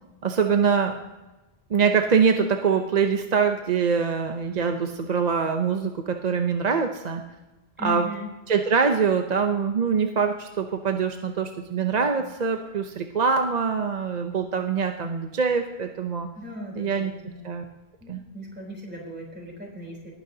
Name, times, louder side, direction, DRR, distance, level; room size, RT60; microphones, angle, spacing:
voice 1, 0.2-1.0 1.7-7.2 7.8-8.1 8.5-16.3 16.8-17.1 17.4-17.6 18.1-18.2, right 6 dB, 45° right, 5 dB, 0.7 m, -24 dB
voice 2, 7.8-8.3 16.3-17.4 18.0-20.1, equal, 10° right, -2 dB, 3.5 m, -37 dB
19.0 x 9.6 x 2.8 m, 1.1 s
omnidirectional pair, 1.1 m